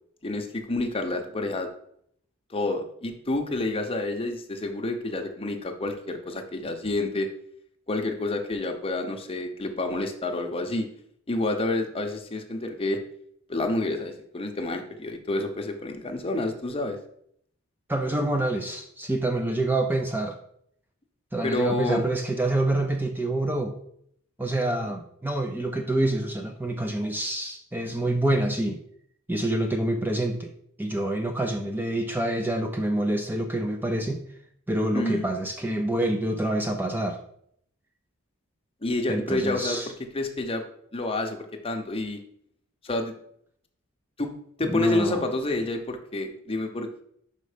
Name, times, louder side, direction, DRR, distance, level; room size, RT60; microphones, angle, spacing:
voice 1, 0.2-1.7 2.5-7.3 7.9-10.9 11.3-13.0 13.5-17.0 21.4-22.0 34.9-35.2 38.8-39.8 40.1-40.6 40.9-41.4 41.6-42.2 42.8-43.1 44.2-44.3 44.6-47.0, left 2 dB, 25° left, 4 dB, 0.8 m, -28 dB
voice 2, 17.9-20.4 21.3-23.7 24.4-28.8 29.3-30.5 30.8-34.2 34.7-37.2 39.1-39.9 44.6-45.2, right 1 dB, 10° right, 5 dB, 0.4 m, -27 dB
5.4 x 5.2 x 5.0 m, 0.69 s
head